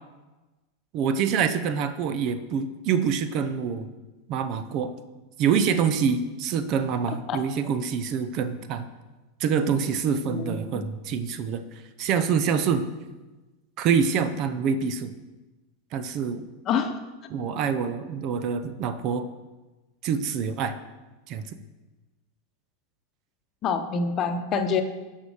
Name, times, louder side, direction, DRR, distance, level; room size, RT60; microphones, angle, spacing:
voice 1, 0.9-3.9 4.3-5.0 5.4-8.9 9.4-11.6 12.0-12.8 13.8-15.1 15.9-16.5 17.3-19.3 20.0-20.8 21.3-21.4, right 6 dB, 45° right, 11 dB, 0.7 m, -26 dB
voice 2, 10.3-10.8 16.7-17.0 23.6-24.8, left 5 dB, 40° left, 7 dB, 1.0 m, -26 dB
11.0 x 5.7 x 5.0 m, 1.2 s
figure-of-eight pair, 90°, 0 cm